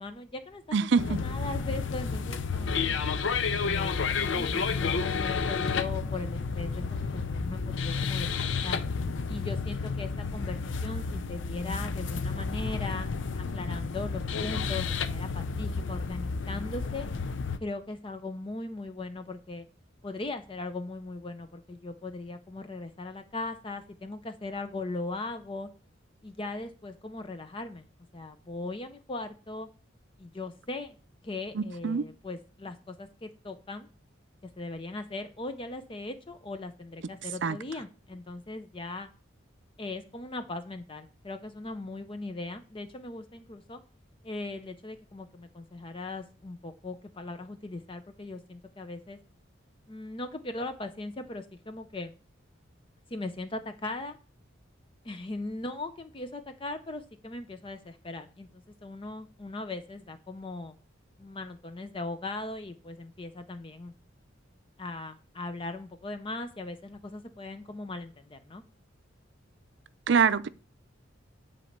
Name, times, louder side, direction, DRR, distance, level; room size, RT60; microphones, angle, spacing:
voice 1, 0.0-2.9 3.6-8.8 9.3-13.1 13.4-17.1 17.6-19.7 20.0-25.7 26.2-27.9 28.1-29.7 30.2-31.0 31.2-33.9 34.6-39.1 39.8-43.8 44.2-49.2 49.9-52.1 53.1-54.2 55.0-60.8 61.2-63.9 64.8-68.6, left 2 dB, 25° left, 0.5 m, -39 dB
voice 2, 0.7-1.2 31.5-32.0 37.4-37.6 70.1-70.5, right 5 dB, 60° right, 0.5 m, -24 dB
sound 1, 1.0-17.6, left 5 dB, 65° left, 0.6 m, -31 dB
9.8 x 4.2 x 6.5 m
head